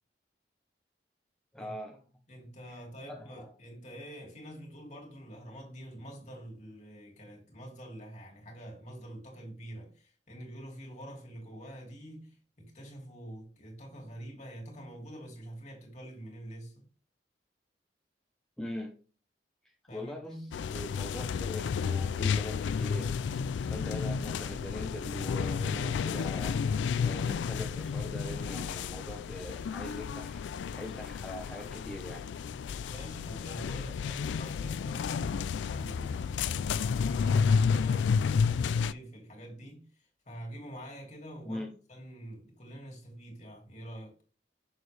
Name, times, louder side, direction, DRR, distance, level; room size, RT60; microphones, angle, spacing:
voice 1, 1.5-2.0 3.1-3.5 18.6-18.9 19.9-26.6 27.0-30.4 30.7-32.3 41.5-41.7, left 1 dB, 5° left, 0.9 m, -42 dB
voice 2, 2.3-16.9 19.9-20.6 32.9-44.2, right 1 dB, 40° left, 2.5 m, -46 dB
sound 1, 20.5-38.9, left 6 dB, 90° left, 0.3 m, -31 dB
6.8 x 6.4 x 3.3 m
head